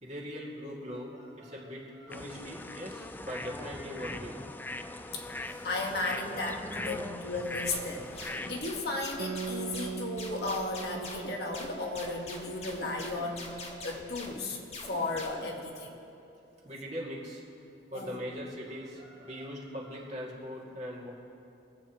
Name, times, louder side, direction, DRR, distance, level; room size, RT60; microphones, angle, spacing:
voice 1, 0.0-4.3 16.6-17.4 17.9-21.1, equal, 40° right, -4 dB, 2.3 m, -40 dB
sound 1, 2.1-8.6, left 2 dB, 10° left, 0.3 m, -40 dB
voice 2, 5.1-14.6 14.9-15.9 17.9-18.2, left 2 dB, 60° left, 0 dB, 1.4 m, -35 dB
sound 2, 7.7-15.5, left 2 dB, 35° left, 1.5 m, -44 dB
Guitar, 9.2-14.1, right 6 dB, 85° right, 0.5 m, -42 dB
24.5 x 8.6 x 3.0 m, 2.7 s
head